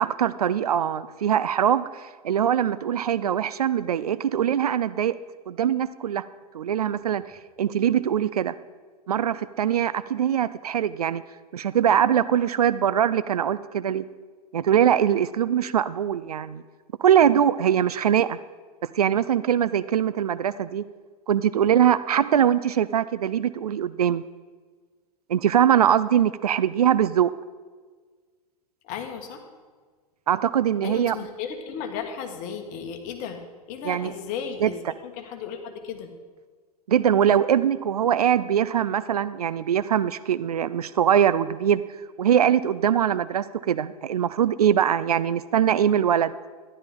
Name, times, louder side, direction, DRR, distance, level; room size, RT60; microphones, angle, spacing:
voice 1, 0.0-5.2 5.5-6.3 6.5-7.2 7.6-8.5 9.1-11.2 11.5-14.0 14.5-16.6 17.0-18.4 18.9-20.8 21.3-24.2 25.3-27.3 30.3-31.2 33.8-34.1 34.6-34.9 36.9-41.8 42.2-46.3, right 9 dB, 75° right, 16 dB, 0.4 m, -22 dB
voice 2, 28.8-29.5 30.8-33.4 33.7-36.1, left 7 dB, 40° left, 5 dB, 1.6 m, -35 dB
13.0 x 11.0 x 3.8 m, 1.5 s
figure-of-eight pair, 95°, 20 cm